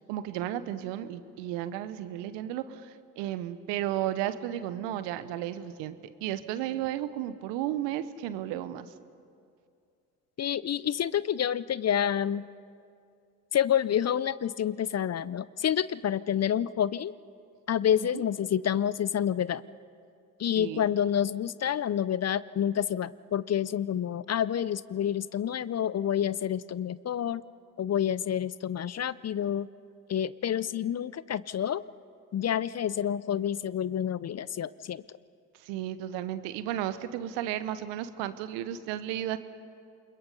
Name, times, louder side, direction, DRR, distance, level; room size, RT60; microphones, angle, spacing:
voice 1, 0.1-8.9 20.6-20.8 35.6-39.4, right 12 dB, 75° right, 13 dB, 1.0 m, -33 dB
voice 2, 10.4-12.4 13.5-17.1 17.7-19.6 20.4-27.4 27.8-29.7 30.1-31.8 32.3-35.2, left 9 dB, 35° left, 19 dB, 0.6 m, -28 dB
28.5 x 22.0 x 5.4 m, 2.4 s
hypercardioid pair, 45°, 43 cm